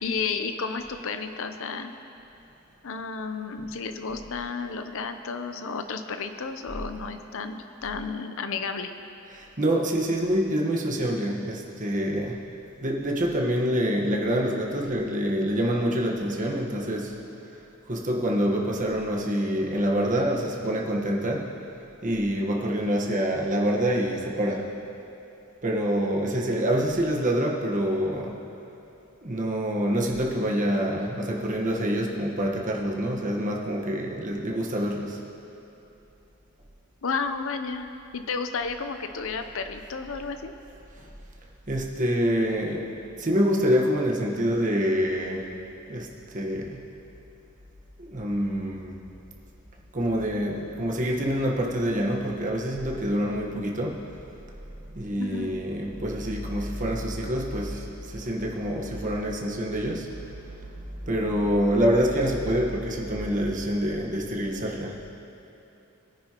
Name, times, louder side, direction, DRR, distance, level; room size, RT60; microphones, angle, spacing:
voice 1, 0.0-1.9 2.8-8.9 37.0-40.5 55.2-55.6, left 5 dB, 65° left, 8 dB, 0.7 m, -32 dB
voice 2, 9.3-12.4 12.8-17.2 17.9-21.5 22.0-24.7 25.6-28.4 29.2-35.2 41.0-41.1 41.7-42.9 43.2-45.5 45.9-46.1 46.3-46.8 48.0-49.0 49.9-54.0 54.9-60.1 60.6-60.7 61.0-65.0, equal, 35° right, -1 dB, 1.4 m, -26 dB
21.0 x 9.8 x 3.0 m, 3.0 s
head